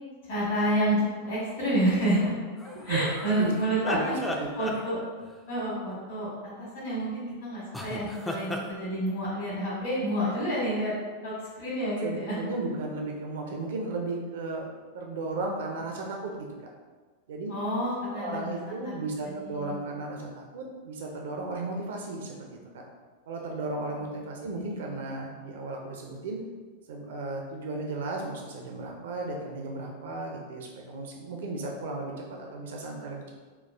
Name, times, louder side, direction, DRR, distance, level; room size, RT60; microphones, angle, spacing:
voice 1, 0.3-2.3 2.6-4.1 4.6-5.0 5.5-10.9 11.2-12.4 17.5-18.9 19.3-19.7 24.4-24.9, right 1 dB, 55° left, -8 dB, 1.4 m, -29 dB
sound 1, 2.6-5.3 7.7-8.7, left 1 dB, 5° left, 0.4 m, -36 dB
voice 2, 3.9-4.5 12.0-14.7 14.9-16.5 17.3-17.5 18.1-22.8 23.3-26.4 26.9-33.3, right 2 dB, 60° right, 0 dB, 0.6 m, -35 dB
4.5 x 2.3 x 3.3 m, 1.4 s
figure-of-eight pair, 90°, 0 cm